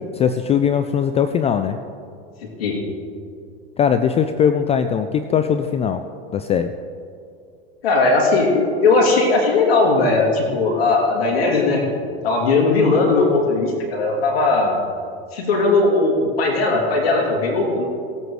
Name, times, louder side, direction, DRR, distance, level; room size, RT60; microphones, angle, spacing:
voice 1, 0.0-1.8 3.8-6.0 6.3-6.7, left 7 dB, 20° left, 9 dB, 0.3 m, -20 dB
voice 2, 7.8-14.8 15.3-17.9, left 3 dB, 85° left, -1 dB, 2.7 m, -18 dB
18.0 x 8.1 x 3.2 m, 2.4 s
hypercardioid pair, 110°, 29 cm